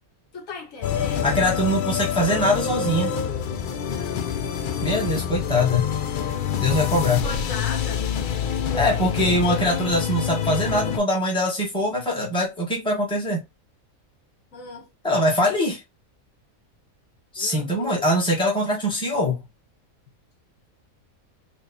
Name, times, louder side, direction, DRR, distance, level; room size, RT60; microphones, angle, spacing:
voice 1, 0.3-1.4 3.9-4.2 7.2-8.1 14.5-14.9 17.4-18.0, left 4 dB, 70° left, 1.5 m, -37 dB
sound 1, 0.8-11.0, left 8 dB, 90° left, 0.4 m, -26 dB
voice 2, 1.2-3.1 4.8-5.9 6.6-7.2 8.7-13.4 15.0-15.8 17.3-19.4, left 1 dB, 5° left, 1.1 m, -22 dB
4.4 x 2.3 x 2.7 m
omnidirectional pair, 1.5 m